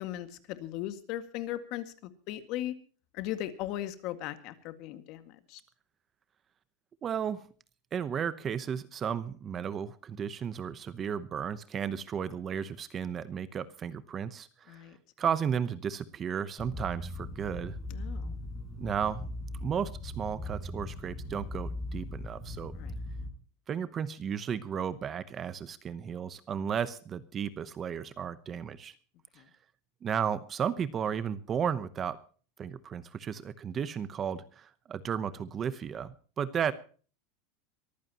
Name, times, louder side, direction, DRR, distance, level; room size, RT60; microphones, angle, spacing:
voice 1, 0.0-1.9 2.3-2.7 3.1-5.6 14.7-15.0 17.9-18.4 22.7-23.0 29.4-29.5, left 13 dB, 45° left, 10 dB, 1.9 m, -38 dB
voice 2, 7.0-7.4 7.9-14.9 15.2-17.8 18.8-19.2 19.6-22.7 23.7-28.9 30.0-32.2 32.6-36.7, right 8 dB, 20° right, 14 dB, 0.9 m, -34 dB
sound 1, 16.6-23.3, left 1 dB, 10° left, 4.6 m, -39 dB
23.5 x 15.0 x 3.0 m, 0.39 s
supercardioid pair, 165°, 0 cm